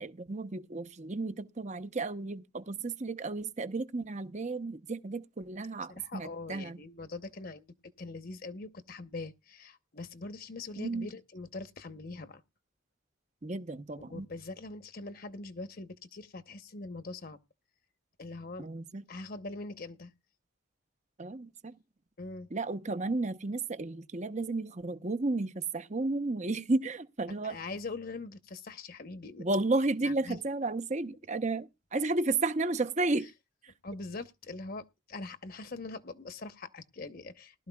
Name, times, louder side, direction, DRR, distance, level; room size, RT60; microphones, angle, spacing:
voice 1, 0.0-6.8 10.8-11.1 13.4-14.3 18.6-19.0 21.2-21.7 22.5-27.6 29.4-33.3, right 2 dB, 35° right, 0.8 m, -33 dB
voice 2, 5.9-7.7 8.0-12.4 14.1-17.4 18.2-18.7 19.1-20.1 22.2-22.5 27.4-29.5 30.0-30.4 33.2-33.3 33.8-37.7, left 3 dB, 45° left, 0.9 m, -42 dB
19.5 x 12.5 x 2.3 m
head